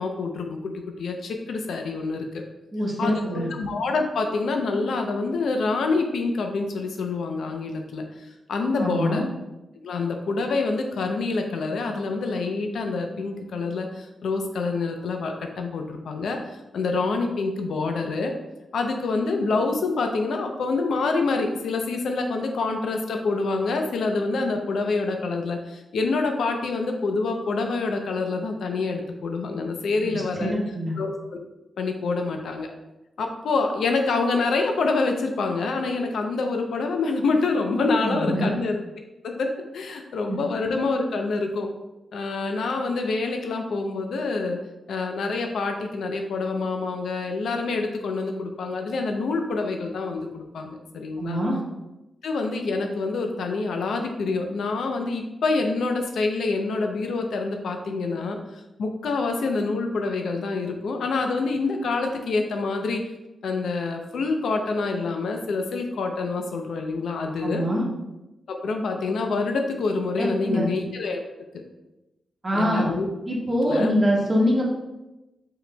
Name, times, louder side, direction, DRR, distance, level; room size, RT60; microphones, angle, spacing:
voice 1, 0.0-2.3 3.0-9.2 9.8-18.3 18.7-30.5 31.0-31.4 31.8-32.7 33.2-38.8 39.2-41.7 42.1-44.6 44.9-51.4 52.2-58.4 58.8-63.0 63.4-67.6 68.5-71.2 72.5-73.1 73.7-73.9, left 3 dB, 85° left, 4 dB, 0.6 m, -26 dB
voice 2, 2.7-3.5 8.8-9.3 30.0-30.9 38.0-38.5 40.3-40.4 51.2-51.6 67.4-67.9 70.2-70.7 72.4-72.9 73.3-74.6, equal, 25° right, -3 dB, 1.4 m, -24 dB
4.8 x 4.8 x 2.2 m, 0.99 s
cardioid pair, 85°, 0 cm